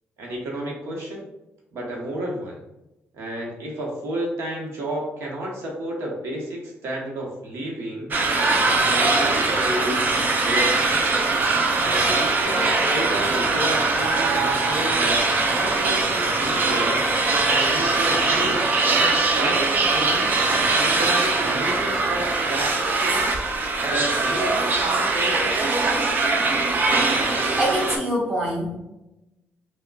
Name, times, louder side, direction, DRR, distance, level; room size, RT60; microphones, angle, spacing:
voice 1, 0.2-1.3 1.7-2.6 3.1-8.1 8.8-11.1 11.8-17.0 17.5-18.8 19.3-23.4 23.9-25.7, right 1 dB, 75° right, -2 dB, 0.9 m, -31 dB
sound 1, 8.1-28.0, right 3 dB, 45° right, 0.5 m, -21 dB
voice 2, 27.6-28.8, right 1 dB, 10° right, -8 dB, 1.2 m, -24 dB
4.8 x 2.2 x 2.2 m, 0.94 s
cardioid pair, 100°, 4 cm